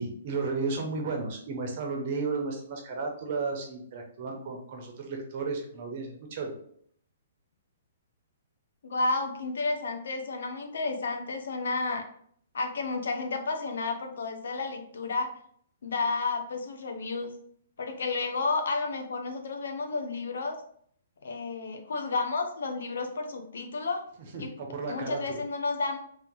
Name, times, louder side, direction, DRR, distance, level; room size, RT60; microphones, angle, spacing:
voice 1, 0.0-6.5 24.3-25.4, right 4 dB, 50° right, 2 dB, 1.0 m, -33 dB
voice 2, 8.8-12.1 12.5-15.3 15.8-17.3 17.8-20.6 21.2-24.0 24.4-24.5 24.9-26.0, left 3 dB, 80° left, 5 dB, 0.8 m, -31 dB
3.2 x 3.0 x 3.8 m, 0.62 s
hypercardioid pair, 145°, 0 cm